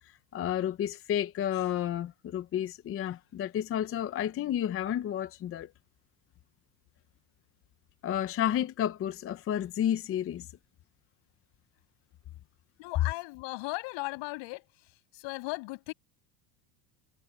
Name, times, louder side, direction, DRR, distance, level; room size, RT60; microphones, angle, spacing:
voice 1, 0.3-5.7 8.0-10.5, left 10 dB, 25° left, 0.7 m, -31 dB
voice 2, 12.8-14.6 15.1-15.9, left 27 dB, 65° left, 6.7 m, -37 dB
supercardioid pair, 135°, 49 cm